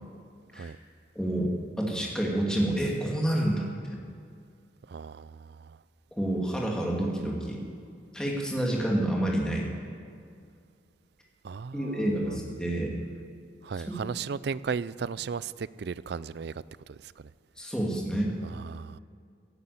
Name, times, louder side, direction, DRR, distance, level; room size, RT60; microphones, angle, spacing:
voice 1, 1.1-4.0 6.2-7.6 8.1-9.7 11.7-12.9 13.9-14.0 17.6-18.3, right 1 dB, 5° left, -2 dB, 2.4 m, -28 dB
voice 2, 4.9-5.8 11.4-12.6 13.6-16.5 16.9-17.3 18.4-19.0, right 5 dB, 60° right, 18 dB, 0.4 m, -36 dB
17.0 x 9.8 x 8.5 m, 2.3 s
head